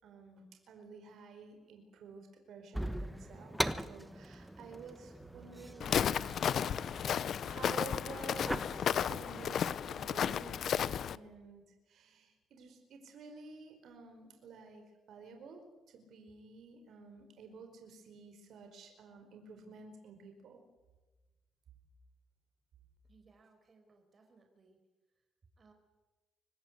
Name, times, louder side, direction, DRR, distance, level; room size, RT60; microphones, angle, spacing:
voice 1, 0.0-6.8 7.4-11.6 11.9-14.8 15.1-15.6 15.9-20.6, right 4 dB, 70° right, 5 dB, 4.8 m, -52 dB
sound 1, 2.7-9.6, right 1 dB, 5° right, 1.3 m, -41 dB
Walk footsteps, 5.8-11.2, left 8 dB, 60° left, 0.7 m, -33 dB
voice 2, 23.0-24.8 25.6-25.7, right 4 dB, 35° right, 4 dB, 4.9 m, -65 dB
25.0 x 19.5 x 8.2 m, 1.2 s
cardioid pair, 100°, 0 cm